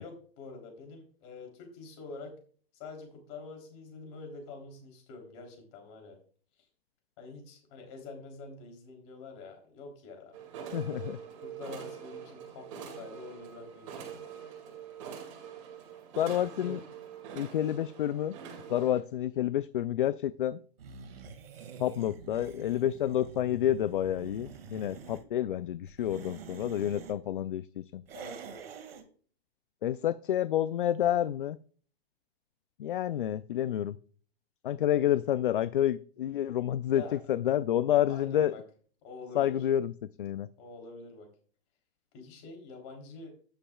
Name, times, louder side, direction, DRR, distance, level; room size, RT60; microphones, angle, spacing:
voice 1, 0.0-2.3 2.7-6.2 7.2-10.4 11.4-14.2 16.6-16.8 28.1-28.6 36.8-37.2 38.1-38.6 39.0-39.6 40.6-41.3 42.1-43.3, left 4 dB, 25° left, 3 dB, 3.4 m, -46 dB
sound 1, 10.3-19.0, right 7 dB, 30° right, 2.3 m, -44 dB
voice 2, 10.7-11.2 16.2-16.8 17.4-18.3 18.7-20.6 21.8-28.0 29.8-31.6 32.8-34.0 34.6-37.0 37.3-38.5 39.3-39.9 40.2-40.5, left 11 dB, 55° left, 15 dB, 0.5 m, -29 dB
sound 2, 20.8-25.2 25.9-27.2 28.1-29.1, right 6 dB, 65° right, 2.1 m, -47 dB
12.5 x 10.0 x 2.3 m, 0.44 s
hypercardioid pair, 175°, 32 cm